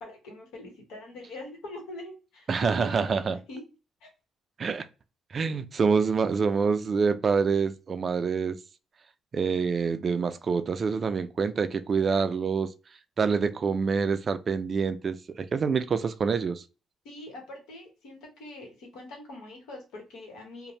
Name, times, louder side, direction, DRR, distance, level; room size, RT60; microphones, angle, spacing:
voice 1, 0.0-3.6 4.0-4.1 17.0-20.7, left 2 dB, 90° left, 1.0 m, -43 dB
voice 2, 2.5-3.4 4.6-4.9 5.3-8.6 9.3-12.7 13.2-16.6, right 5 dB, 45° right, 0.3 m, -26 dB
2.6 x 2.1 x 3.1 m
cardioid pair, 90°, 0 cm